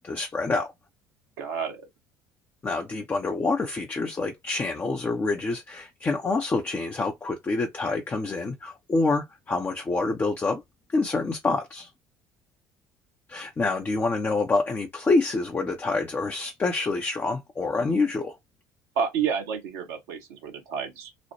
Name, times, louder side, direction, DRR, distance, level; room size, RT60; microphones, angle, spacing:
voice 1, 0.0-0.7 2.6-10.6 10.9-11.9 13.3-18.4, left 3 dB, 25° left, 0.6 m, -27 dB
voice 2, 1.4-1.8 19.0-21.3, right 7 dB, 65° right, 1.0 m, -30 dB
3.1 x 2.0 x 2.9 m
figure-of-eight pair, 55°, 9 cm